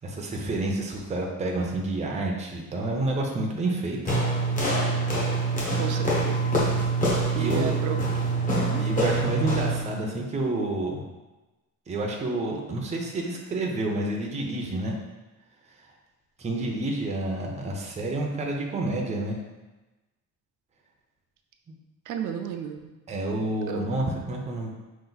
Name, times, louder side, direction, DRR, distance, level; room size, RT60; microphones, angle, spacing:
voice 1, 0.0-4.2 4.7-5.1 7.4-7.8 8.8-11.0 11.9-15.0 16.4-19.4 23.1-24.7, right 2 dB, 20° right, 0 dB, 0.5 m, -29 dB
sound 1, 4.1-9.9, right 2 dB, 25° left, 1.0 m, -25 dB
voice 2, 5.8-6.5 7.3-8.0 8.7-8.9 22.1-22.9 23.7-23.9, right 7 dB, 75° right, 5 dB, 0.4 m, -33 dB
5.2 x 2.5 x 3.9 m, 1.1 s
cardioid pair, 180°, 31 cm